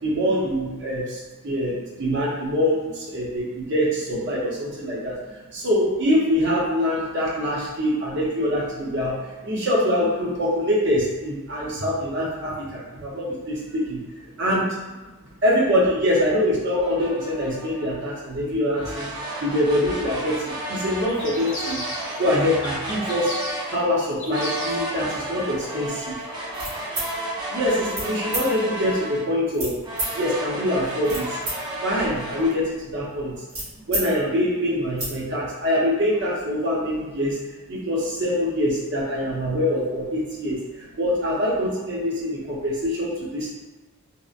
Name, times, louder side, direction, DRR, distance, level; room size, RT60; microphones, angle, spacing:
voice 1, 0.0-5.1 5.5-14.8 15.4-19.1 19.4-21.8 22.2-23.4 23.7-26.2 27.5-29.8 30.1-31.4 31.8-33.3 33.9-37.4 37.7-43.5, equal, 55° right, -5 dB, 0.7 m, -24 dB
sound 1, 16.8-18.0 18.7-23.8 24.3-29.4 29.8-32.5, right 1 dB, 20° right, 0.4 m, -32 dB
sound 2, 21.1-22.3 22.6-24.9, left 1 dB, 55° left, 0.7 m, -35 dB
sound 3, 26.5-27.1 27.9-28.1 28.3-28.4 29.5-30.1 30.8-31.5 31.9-34.1 34.4-34.5 34.8-35.1, right 1 dB, 70° right, 1.2 m, -30 dB
2.8 x 2.0 x 2.5 m, 1.2 s
head